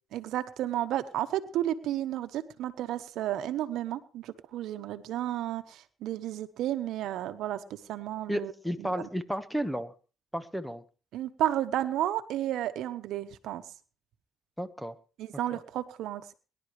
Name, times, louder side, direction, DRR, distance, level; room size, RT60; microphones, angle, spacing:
voice 1, 0.1-8.5 8.8-9.1 11.1-13.6 15.2-16.3, right 12 dB, 85° right, 10 dB, 1.1 m, -32 dB
voice 2, 8.3-9.9 10.3-10.8 14.6-14.9 15.5-15.6, equal, ahead, 12 dB, 1.3 m, -33 dB
23.5 x 11.0 x 3.2 m, 0.35 s
cardioid pair, 90°, 0 cm